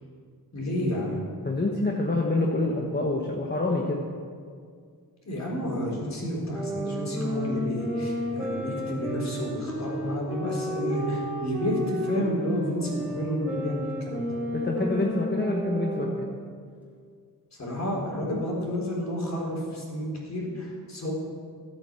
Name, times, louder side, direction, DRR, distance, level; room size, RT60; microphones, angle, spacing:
voice 1, 0.5-1.2 5.3-14.4 17.6-21.1, left 1 dB, 45° left, -4 dB, 4.3 m, -30 dB
voice 2, 1.4-4.0 14.5-16.3, left 2 dB, 25° left, -1 dB, 1.2 m, -27 dB
sound 1, 6.5-16.5, equal, 5° right, 3.0 m, -32 dB
14.0 x 8.7 x 7.6 m, 2.1 s
wide cardioid pair, 120°, 37 cm